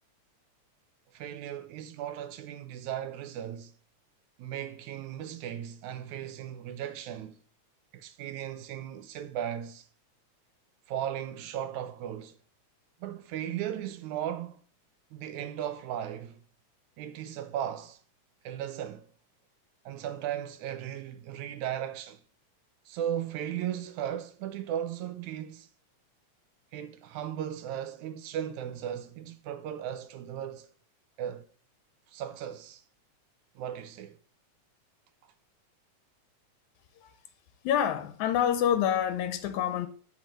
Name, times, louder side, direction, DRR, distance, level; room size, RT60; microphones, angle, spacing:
voice 1, 1.1-3.7 4.4-7.4 7.9-9.8 10.9-12.3 13.0-14.6 15.1-16.4 17.0-18.0 18.4-19.1 19.9-22.2 22.9-25.7 26.7-30.7 31.2-31.5 32.1-32.8 33.6-34.2, right 10 dB, 80° right, 2.2 m, -36 dB
voice 2, 37.6-39.9, left 9 dB, 85° left, 2.1 m, -27 dB
8.2 x 4.7 x 7.4 m
omnidirectional pair, 3.4 m